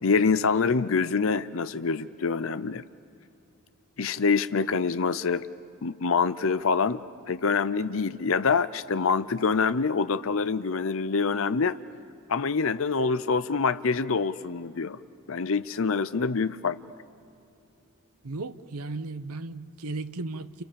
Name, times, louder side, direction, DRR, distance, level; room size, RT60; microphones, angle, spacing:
voice 1, 0.0-2.8 4.0-5.4 5.8-7.0 7.3-11.8 12.3-15.0 15.3-16.8, left 5 dB, 65° left, 0.6 m, -25 dB
voice 2, 18.2-20.6, right 3 dB, 90° right, 1.0 m, -35 dB
29.5 x 28.5 x 7.0 m
head